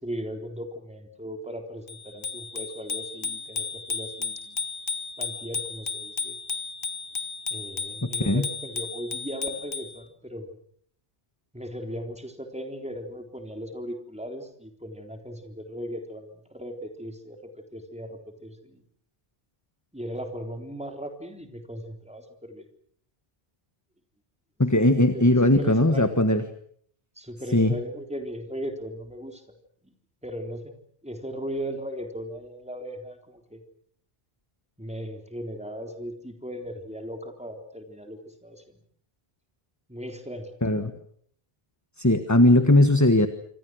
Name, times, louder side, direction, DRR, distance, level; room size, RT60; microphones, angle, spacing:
voice 1, 0.0-4.6 5.2-6.4 7.5-10.5 11.5-18.8 19.9-22.6 24.9-26.2 27.2-29.4 29.8-29.9 30.2-30.7 31.0-33.6 34.8-38.8 39.9-40.5, equal, 5° right, 4 dB, 3.7 m, -37 dB
Bicycle bell, 1.9-10.0, left 4 dB, 55° left, 1.4 m, -34 dB
voice 2, 8.0-8.4 24.6-26.4 27.5-27.7 40.6-40.9 42.0-43.3, left 1 dB, 15° left, 9 dB, 1.4 m, -19 dB
27.5 x 25.0 x 6.4 m, 0.63 s
omnidirectional pair, 1.1 m